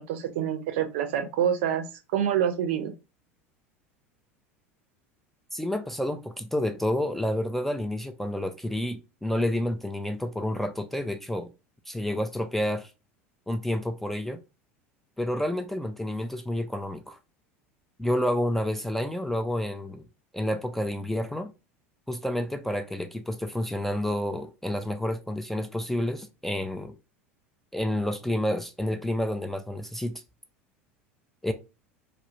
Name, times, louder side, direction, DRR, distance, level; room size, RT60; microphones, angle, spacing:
voice 1, 0.0-1.8 2.1-2.9, right 9 dB, 60° right, 0.5 m, -26 dB
voice 2, 5.5-11.5 11.9-12.9 13.5-14.4 15.2-17.2 18.0-20.0 20.3-21.5 22.1-27.0 27.7-30.2 31.4-31.5, left 1 dB, 5° left, 0.3 m, -29 dB
2.3 x 2.0 x 3.0 m
figure-of-eight pair, 80°, 7 cm